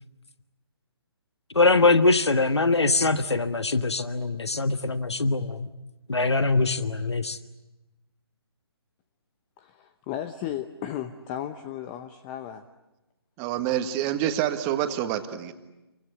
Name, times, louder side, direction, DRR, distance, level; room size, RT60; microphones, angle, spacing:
voice 1, 1.5-5.7 6.1-7.4, left 3 dB, 85° left, 10 dB, 1.4 m, -22 dB
voice 2, 9.6-12.6, left 10 dB, 20° left, 10 dB, 0.9 m, -35 dB
voice 3, 13.4-15.5, right 11 dB, 20° right, 8 dB, 1.7 m, -27 dB
29.0 x 24.0 x 8.3 m, 1.0 s
figure-of-eight pair, 145°, 14 cm